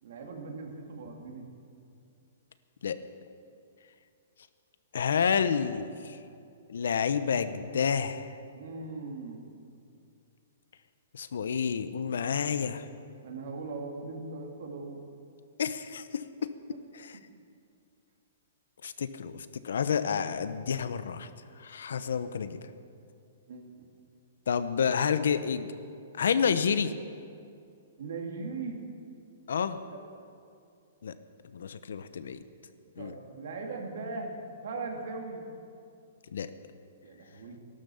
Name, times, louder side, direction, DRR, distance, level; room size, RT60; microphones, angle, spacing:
voice 1, 0.0-1.5 8.5-9.4 13.2-15.0 23.5-23.7 28.0-28.8 33.0-34.4 34.6-35.5 37.0-37.6, right 3 dB, 55° right, 2 dB, 2.6 m, -39 dB
voice 2, 4.9-6.2 6.7-8.3 11.1-12.9 15.6-16.2 18.8-21.3 21.6-22.6 24.5-25.7 26.2-26.9 29.5-29.8 31.0-31.1 31.5-32.4 33.0-33.1 36.3-36.5, left 6 dB, 80° left, 12 dB, 0.9 m, -29 dB
15.5 x 12.0 x 7.0 m, 2.5 s
hypercardioid pair, 175°, 0 cm